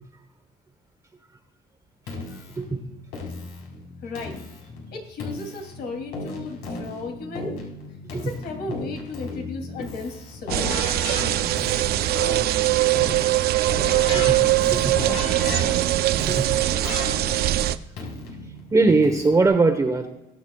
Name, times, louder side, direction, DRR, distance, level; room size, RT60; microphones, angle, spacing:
Keyboard (musical), 2.1-19.5, left 3 dB, 85° left, 4.3 m, -35 dB
voice 1, 4.0-4.4 4.9-7.5 8.1-10.8, left 3 dB, 70° left, 3 dB, 2.8 m, -35 dB
sound 1, 10.5-17.7, right 14 dB, 70° right, 0.5 m, -22 dB
voice 2, 18.7-20.1, right 3 dB, 20° right, 5 dB, 1.1 m, -21 dB
22.0 x 8.3 x 2.4 m, 0.94 s
cardioid pair, 110°, 17 cm